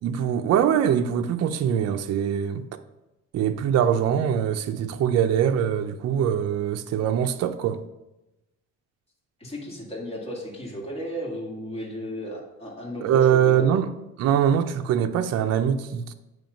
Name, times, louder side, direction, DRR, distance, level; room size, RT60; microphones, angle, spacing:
voice 1, 0.0-2.7 3.3-7.8 13.0-13.9 14.2-16.1, right 9 dB, 60° right, 0.5 m, -23 dB
voice 2, 9.4-13.7, equal, 20° left, 2.1 m, -34 dB
8.8 x 3.2 x 5.1 m
cardioid pair, 150°, 29 cm